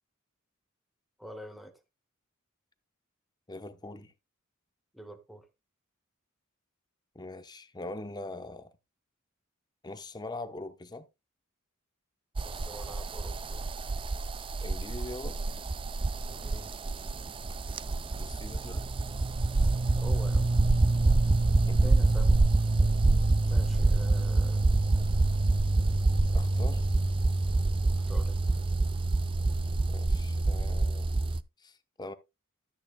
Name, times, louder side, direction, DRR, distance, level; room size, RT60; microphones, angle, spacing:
voice 1, 1.2-1.7 4.9-5.4 12.4-13.7 16.3-16.8 20.0-20.5 21.8-22.4 23.5-24.6 27.9-28.4, equal, ahead, 1.3 m, -46 dB
voice 2, 3.5-4.1 7.1-8.7 9.8-11.1 14.6-15.4 18.1-18.9 21.7-21.9 26.3-26.8 29.9-31.1 31.6-32.1, left 2 dB, 20° left, 0.8 m, -42 dB
sound 1, 12.4-31.4, right 2 dB, 25° right, 0.4 m, -26 dB
13.0 x 9.2 x 2.2 m
head